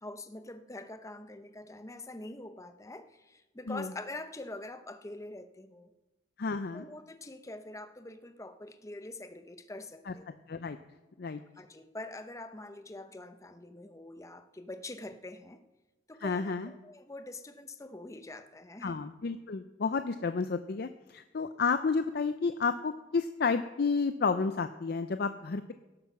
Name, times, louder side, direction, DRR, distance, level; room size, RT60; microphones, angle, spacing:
voice 1, 0.0-5.9 6.7-10.4 11.6-15.6 16.1-19.0, left 2 dB, 15° left, 9 dB, 0.7 m, -45 dB
voice 2, 6.4-6.8 10.1-10.2 10.5-10.8 11.2-11.4 16.2-16.7 18.8-25.7, left 4 dB, 55° left, 10 dB, 0.5 m, -31 dB
17.0 x 8.8 x 6.0 m, 1.1 s
head